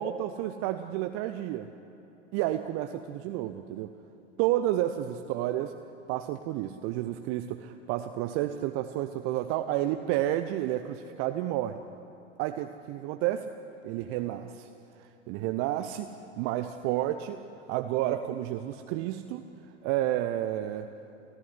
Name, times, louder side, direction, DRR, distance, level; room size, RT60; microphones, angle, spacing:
voice 1, 0.0-1.7 2.3-3.9 4.4-5.7 6.1-11.8 12.4-13.5 13.8-14.7 15.0-16.1 16.4-17.4 17.7-19.4 19.8-20.9, right 13 dB, 35° right, 9 dB, 0.9 m, -30 dB
29.5 x 14.5 x 9.7 m, 2.9 s
figure-of-eight pair, 90°, 37 cm